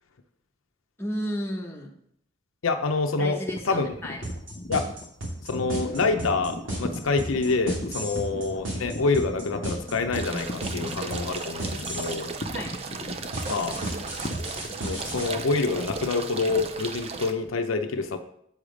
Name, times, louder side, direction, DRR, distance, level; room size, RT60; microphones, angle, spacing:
voice 1, 1.0-1.9 3.2-4.2 8.2-8.4 12.5-12.7, equal, 10° left, -1 dB, 1.0 m, -33 dB
voice 2, 2.6-3.4 3.6-3.9 4.7-4.8 5.4-12.4 13.4-13.8 14.8-18.2, left 3 dB, 80° left, 6 dB, 0.7 m, -27 dB
sound 1, 3.5-17.5, left 1 dB, 35° left, 0.6 m, -38 dB
sound 2, 4.2-12.2 13.3-15.3, right 1 dB, 70° right, 2.7 m, -33 dB
sound 3, 10.1-17.3, right 4 dB, 30° right, 0.5 m, -36 dB
8.0 x 5.0 x 5.1 m, 0.71 s
head